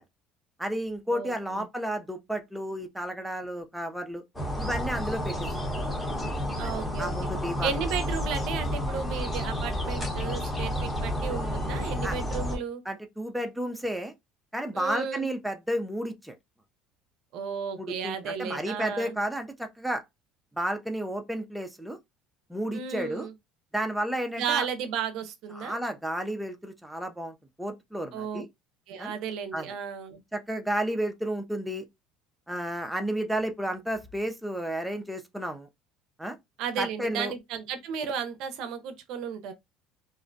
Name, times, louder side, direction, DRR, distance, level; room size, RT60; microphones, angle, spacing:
voice 1, 0.6-4.2 4.6-5.5 6.6-6.7 7.0-7.8 12.0-12.1 12.9-14.1 14.5-16.4 17.8-20.0 20.6-22.0 22.5-23.3 23.7-24.7 25.5-28.5 29.0-29.1 29.5-29.7 30.3-31.8 32.5-35.7 36.2-36.4 36.8-37.3, right 1 dB, 5° right, 0.4 m, -32 dB
voice 2, 1.1-1.7 6.6-7.1 7.6-12.8 14.7-15.3 17.3-19.2 22.7-23.3 24.4-25.8 28.1-28.4 28.9-30.2 36.6-39.5, right 7 dB, 65° right, 0.5 m, -34 dB
sound 1, 4.4-12.6, equal, 15° left, 0.8 m, -31 dB
2.5 x 2.0 x 2.5 m
supercardioid pair, 115°, 0 cm